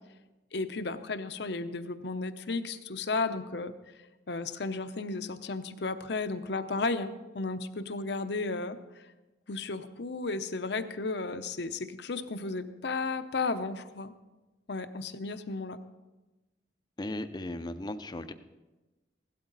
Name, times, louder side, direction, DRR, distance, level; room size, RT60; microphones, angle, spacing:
voice 1, 0.5-3.7 4.3-8.8 9.5-14.1 14.7-15.8, left 3 dB, 65° left, 10 dB, 0.7 m, -34 dB
voice 2, 17.0-18.3, left 1 dB, 20° left, 10 dB, 0.5 m, -36 dB
16.5 x 12.0 x 4.0 m, 1.1 s
head